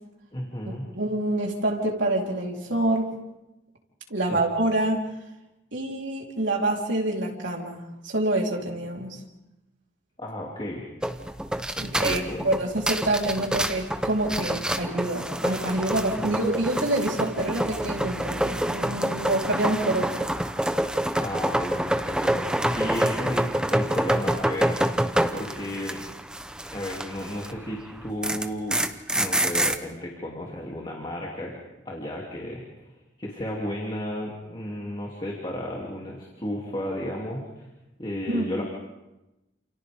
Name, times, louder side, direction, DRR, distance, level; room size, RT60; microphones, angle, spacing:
voice 1, 0.3-0.9 4.2-4.4 10.2-10.8 11.8-12.5 16.1-16.4 21.2-26.0 26.7-28.8 29.1-31.6 31.8-32.9 33.2-37.7 38.0-38.6, left 1 dB, 25° left, -2 dB, 2.8 m, -33 dB
voice 2, 0.9-3.1 4.1-5.0 5.7-9.2 11.8-20.3 38.3-38.5, right 2 dB, 75° right, -1 dB, 3.9 m, -27 dB
sound 1, 11.0-27.6 27.9-29.8, right 1 dB, 5° right, 0.8 m, -27 dB
29.5 x 28.5 x 3.6 m, 0.99 s
head